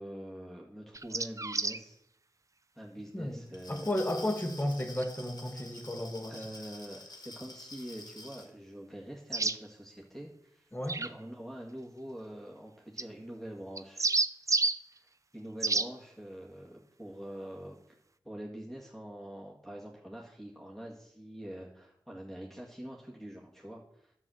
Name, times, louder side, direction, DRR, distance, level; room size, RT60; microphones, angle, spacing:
voice 1, 0.0-2.0 2.8-4.3 6.3-10.7 11.0-14.1 14.9-17.8 18.2-24.1, right 1 dB, 5° left, -2 dB, 1.9 m, -45 dB
sound 1, 0.9-1.8 5.0-5.1 9.3-9.6 10.8-11.1 13.0-13.1 13.8-14.8 15.6-15.9, right 3 dB, 40° right, 0.6 m, -29 dB
Glass, 3.5-8.5, left 2 dB, 55° left, 1.9 m, -49 dB
voice 2, 3.7-6.4 10.7-11.0, left 1 dB, 25° left, 5 dB, 1.8 m, -33 dB
11.5 x 6.3 x 7.8 m, 0.74 s
wide cardioid pair, 65°, 8 cm